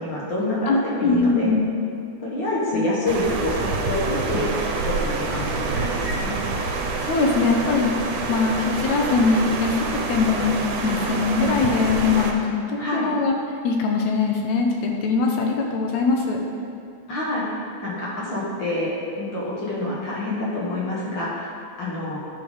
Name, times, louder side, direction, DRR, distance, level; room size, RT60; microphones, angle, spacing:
voice 1, 0.0-1.5 2.2-6.3 12.8-13.1 17.1-17.5 17.8-21.5 21.8-22.2, left 1 dB, 55° left, -6 dB, 1.3 m, -27 dB
voice 2, 0.7-1.7 2.7-2.9 7.0-7.9 8.3-10.6 10.8-13.3 13.6-16.4, left 4 dB, 80° left, 1 dB, 1.8 m, -22 dB
sound 1, 3.1-12.3, right 4 dB, 80° right, 2.1 m, -27 dB
10.0 x 3.5 x 4.9 m, 2.4 s
omnidirectional pair, 3.5 m